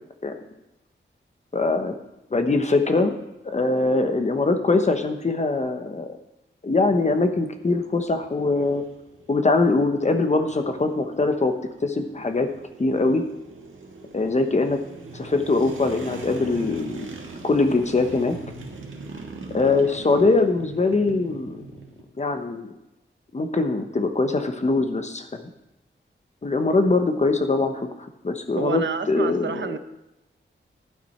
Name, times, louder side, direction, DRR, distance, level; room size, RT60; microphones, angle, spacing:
voice 1, 1.5-1.9 2.3-3.2 3.4-6.1 6.6-8.8 9.3-11.5 11.8-12.5 12.8-13.2 14.1-14.8 15.1-17.1 17.4-18.4 19.5-21.6 22.2-22.7 23.3-25.5 26.4-27.9 28.2-28.8 29.1-29.8, left 3 dB, 35° left, 7 dB, 1.0 m, -22 dB
sound 1, 6.9-22.0, right 3 dB, 85° right, 1.6 m, -42 dB
voice 2, 28.6-29.8, right 6 dB, 65° right, 10 dB, 0.7 m, -29 dB
11.5 x 9.4 x 4.4 m, 0.92 s
wide cardioid pair, 115°, 20 cm